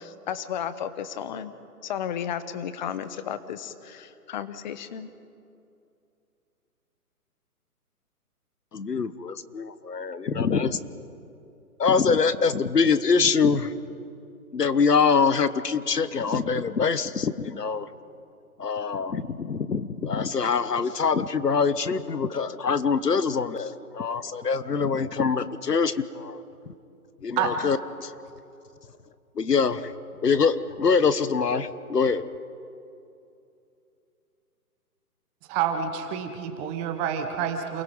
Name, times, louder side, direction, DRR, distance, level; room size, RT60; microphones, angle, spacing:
voice 1, 0.0-1.5 1.8-5.1, left 9 dB, 30° left, 13 dB, 1.0 m, -33 dB
voice 2, 8.7-10.8 11.8-13.7 14.5-17.9 18.6-26.4 27.2-28.1 29.4-29.9 30.2-32.2, left 5 dB, 90° left, 14 dB, 1.2 m, -24 dB
voice 3, 35.5-37.8, right 8 dB, 15° right, 6 dB, 0.9 m, -28 dB
28.5 x 17.5 x 5.4 m, 2.6 s
figure-of-eight pair, 140°, 46 cm